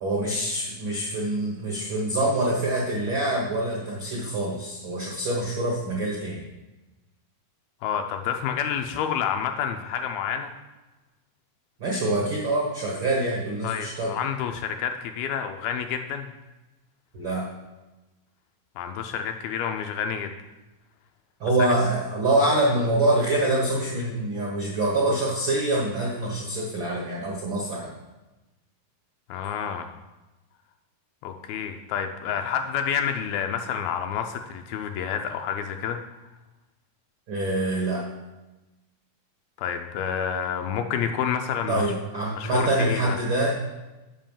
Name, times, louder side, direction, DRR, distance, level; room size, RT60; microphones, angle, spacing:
voice 1, 0.0-6.4 11.8-14.1 17.1-17.5 21.4-27.9 37.3-38.0 41.7-43.6, right 1 dB, 75° right, -3 dB, 1.1 m, -25 dB
voice 2, 7.8-10.5 13.6-16.3 18.8-20.3 29.3-29.9 31.2-36.0 39.6-41.8 42.4-43.2, left 8 dB, 80° left, 5 dB, 2.3 m, -29 dB
7.6 x 5.4 x 7.2 m, 1.1 s
omnidirectional pair, 4.6 m